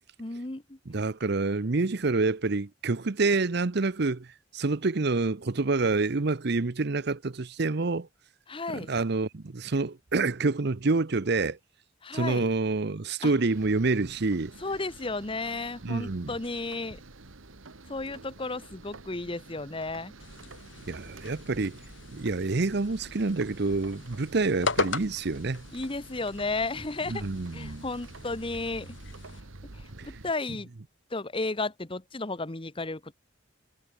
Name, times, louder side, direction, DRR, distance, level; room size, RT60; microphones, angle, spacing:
voice 1, 0.2-0.8 8.5-8.9 12.0-12.5 13.2-13.3 14.6-17.0 17.9-20.1 25.7-27.2 27.5-28.9 29.7-30.7 31.1-33.1, left 3 dB, 25° left, 1.1 m, -33 dB
voice 2, 0.9-4.3 4.5-8.1 8.7-11.6 12.1-14.5 15.8-16.3 20.9-21.8 22.1-25.6 27.1-27.8 30.0-30.1, right 3 dB, 55° right, 0.8 m, -27 dB
sound 1, 13.5-30.3, right 2 dB, 90° right, 1.7 m, -48 dB
sound 2, 20.2-29.4, left 3 dB, 70° left, 3.1 m, -38 dB
head